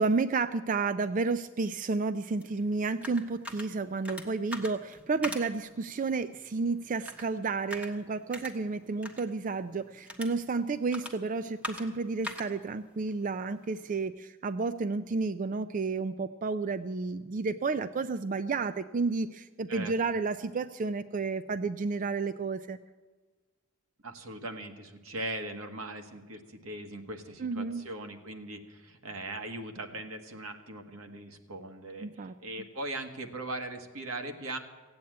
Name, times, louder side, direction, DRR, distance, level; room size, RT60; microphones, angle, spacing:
voice 1, 0.0-22.8 27.4-27.8 32.0-32.3, right 4 dB, 40° right, 12 dB, 0.4 m, -31 dB
sound 1, 2.4-14.1, left 1 dB, 5° right, 1.2 m, -45 dB
voice 2, 24.0-34.6, right 2 dB, 85° right, 5 dB, 1.6 m, -40 dB
16.0 x 8.7 x 8.7 m, 1.4 s
head